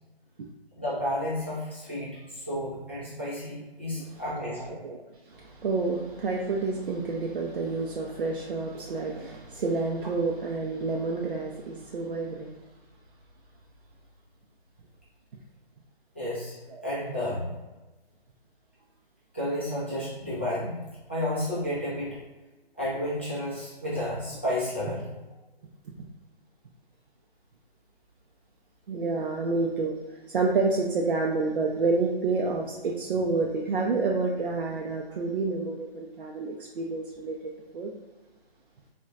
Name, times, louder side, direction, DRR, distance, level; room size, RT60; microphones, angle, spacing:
voice 1, 0.8-4.7 16.1-16.5 16.8-17.5 19.3-20.8 21.1-22.2 22.8-25.0, left 1 dB, 10° left, -11 dB, 0.4 m, -31 dB
voice 2, 4.0-4.4 4.7-5.0 5.3-12.6 16.7-16.8 28.9-30.0 30.3-37.4 37.7-37.9, right 3 dB, 60° right, 0 dB, 0.5 m, -29 dB
4.2 x 2.1 x 2.4 m, 1.1 s
hypercardioid pair, 160°, 31 cm